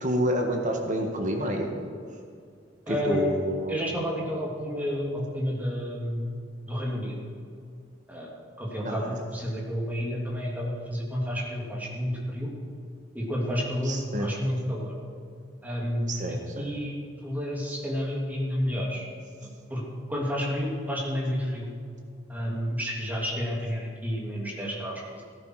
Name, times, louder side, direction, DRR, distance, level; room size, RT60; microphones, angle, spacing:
voice 1, 0.0-1.7 2.9-3.8 8.8-9.2 13.8-14.3 16.1-16.7, right 1 dB, 40° right, 2 dB, 1.6 m, -28 dB
voice 2, 2.9-3.3 3.7-6.4 6.7-7.1 8.1-8.3 8.6-12.5 13.1-14.9 15.6-17.0 17.2-19.0 19.7-19.8 20.1-21.7 22.3-25.2, equal, 10° right, -3 dB, 3.0 m, -30 dB
15.5 x 13.5 x 4.9 m, 2.2 s
head